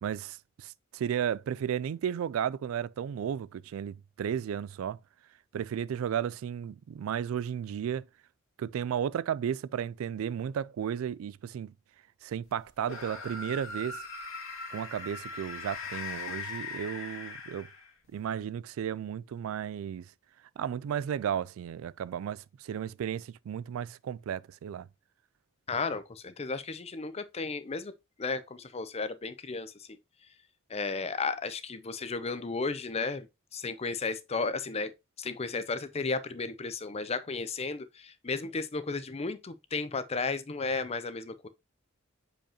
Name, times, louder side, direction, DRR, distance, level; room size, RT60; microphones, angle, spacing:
voice 1, 0.0-5.0 5.5-8.1 8.6-11.7 12.2-14.0 14.7-17.7 18.1-20.1 20.6-24.9, right 8 dB, 90° right, 0.3 m, -34 dB
sound 1, 12.8-18.1, left 4 dB, 75° left, 2.0 m, -40 dB
voice 2, 25.7-27.9 28.2-30.0 30.7-33.3 33.5-34.9 35.2-41.5, left 4 dB, 30° left, 0.6 m, -34 dB
6.9 x 5.2 x 2.8 m
head